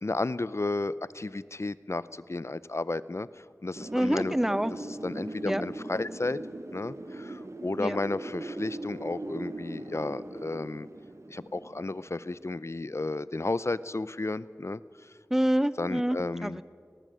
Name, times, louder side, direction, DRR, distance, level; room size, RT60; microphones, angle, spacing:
voice 1, 0.0-4.4 5.0-6.4 6.7-10.9 11.3-14.8 15.8-16.6, left 2 dB, 55° left, 17 dB, 0.6 m, -33 dB
Wind, 3.8-12.5, right 2 dB, 60° right, 1.2 m, -40 dB
voice 2, 3.9-4.7 5.4-5.6 7.8-8.0 15.3-16.6, equal, 5° right, 16 dB, 0.7 m, -27 dB
19.0 x 19.0 x 7.7 m, 2.1 s
wide cardioid pair, 45°, 6 cm